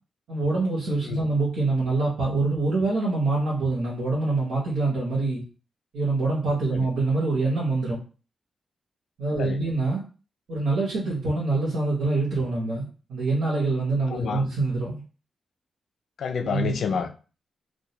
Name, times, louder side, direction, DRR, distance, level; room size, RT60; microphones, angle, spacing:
voice 1, 0.3-5.4 5.9-8.0 9.2-10.0 10.5-15.0 16.4-16.7, right 3 dB, 90° right, -6 dB, 0.8 m, -25 dB
voice 2, 14.1-14.4 16.2-17.1, left 6 dB, 65° left, 7 dB, 0.3 m, -29 dB
2.3 x 2.2 x 2.8 m, 0.36 s
wide cardioid pair, 175°, 0 cm